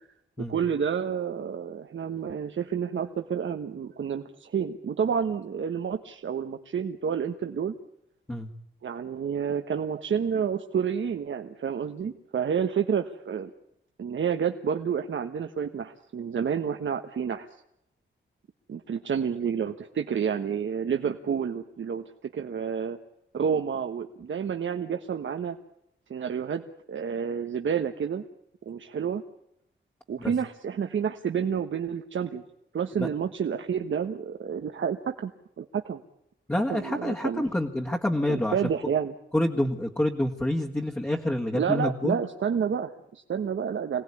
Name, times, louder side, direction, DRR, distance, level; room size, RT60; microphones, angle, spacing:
voice 1, 0.5-7.7 8.8-13.5 14.0-17.5 18.7-23.0 23.3-25.6 26.1-26.6 26.9-28.2 28.7-29.2 30.1-32.4 32.7-35.3 35.6-36.0 36.7-37.4 38.3-39.1 41.5-44.0, right 7 dB, 75° right, 6 dB, 1.3 m, -29 dB
voice 2, 36.5-38.6 39.3-42.2, left 1 dB, 10° left, -1 dB, 1.7 m, -27 dB
26.5 x 18.5 x 9.9 m, 0.80 s
wide cardioid pair, 175°, 20 cm